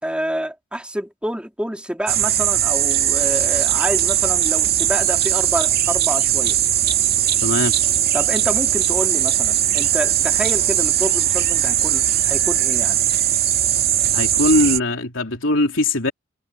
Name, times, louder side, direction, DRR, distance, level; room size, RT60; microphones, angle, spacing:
voice 1, 0.0-6.6 8.1-13.0, equal, 5° right, 4.0 m, -28 dB
sound 1, 2.1-14.8, right 11 dB, 55° right, 2.3 m, -19 dB
voice 2, 7.4-7.7 14.1-16.1, left 2 dB, 80° left, 3.3 m, -20 dB
head